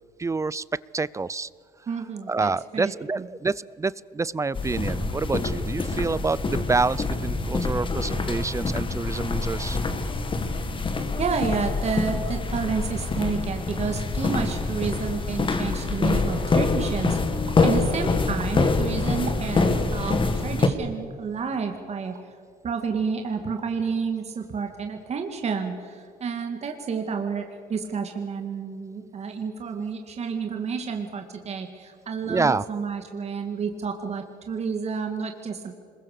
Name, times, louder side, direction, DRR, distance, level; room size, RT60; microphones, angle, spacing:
voice 1, 0.2-1.5 2.3-9.8 32.2-32.6, right 3 dB, 20° right, 20 dB, 0.5 m, -27 dB
voice 2, 1.9-3.2 11.2-22.2 22.6-35.7, right 5 dB, 40° right, 4 dB, 2.1 m, -30 dB
sound 1, 4.5-20.7, left 3 dB, 30° left, 2.0 m, -25 dB
sound 2, 14.5-14.8 15.3-15.4 15.6-16.1 16.6-17.0 17.5-17.7 18.2-19.8 20.6-20.9 21.5-22.4 22.8-23.0 23.4-23.9 24.1-24.6, right 9 dB, 85° right, 2.2 m, -46 dB
26.0 x 22.0 x 6.7 m, 2.2 s
cardioid pair, 110°, 17 cm